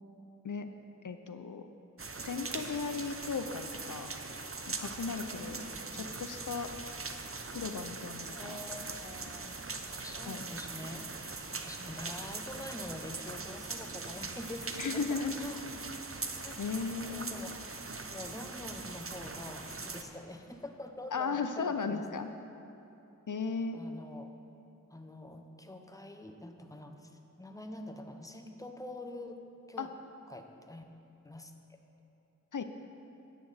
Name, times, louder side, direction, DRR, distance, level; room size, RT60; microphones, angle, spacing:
voice 1, 1.0-1.7 2.2-4.1 4.8-5.6 6.2-6.7 7.5-8.6 10.3-10.4 14.8-15.4 16.6-17.3 21.1-22.3 23.3-23.8 29.8-29.9 32.5-32.6, left 5 dB, 85° left, 8 dB, 0.6 m, -36 dB
sound 1, 2.0-20.0, right 3 dB, 45° right, 0.7 m, -41 dB
voice 2, 5.2-6.1 8.4-9.6 9.9-15.7 16.4-16.6 17.0-17.6 18.1-22.0 23.7-24.3 24.9-29.9 30.3-30.8 31.2-31.5, left 1 dB, 10° left, 5 dB, 0.8 m, -45 dB
13.0 x 9.0 x 4.0 m, 3.0 s
wide cardioid pair, 45°, 30 cm